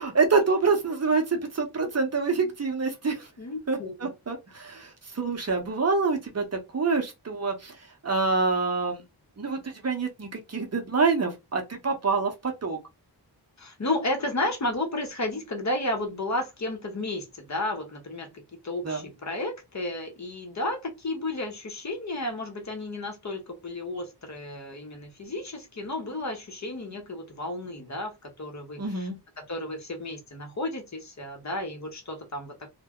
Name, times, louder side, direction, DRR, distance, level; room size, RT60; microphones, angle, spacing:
voice 1, 0.0-3.3 3.7-9.0 9.4-12.8 18.8-19.1 28.8-29.1, right 4 dB, 40° right, 0.7 m, -26 dB
voice 2, 3.4-4.1 13.6-18.3 18.6-29.1 29.4-32.7, left 2 dB, 45° left, 0.8 m, -32 dB
2.2 x 2.1 x 3.5 m
wide cardioid pair, 115°, 41 cm